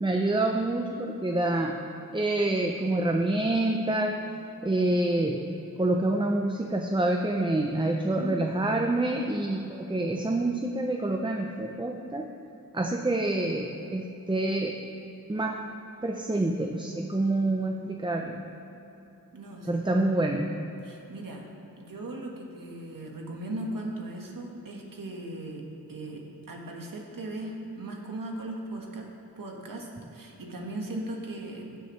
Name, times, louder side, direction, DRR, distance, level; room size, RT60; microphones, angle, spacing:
voice 1, 0.0-1.8 2.1-4.2 4.6-5.5 5.8-12.3 12.7-14.8 15.3-15.6 16.0-18.5 19.7-20.5, right 2 dB, 15° right, 3 dB, 0.6 m, -27 dB
voice 2, 8.0-8.3 19.3-20.4 20.8-21.5 21.8-25.6 25.9-29.1 29.4-31.8, right 1 dB, 65° right, 0 dB, 1.7 m, -38 dB
15.5 x 9.8 x 3.2 m, 3.0 s
wide cardioid pair, 90°, 36 cm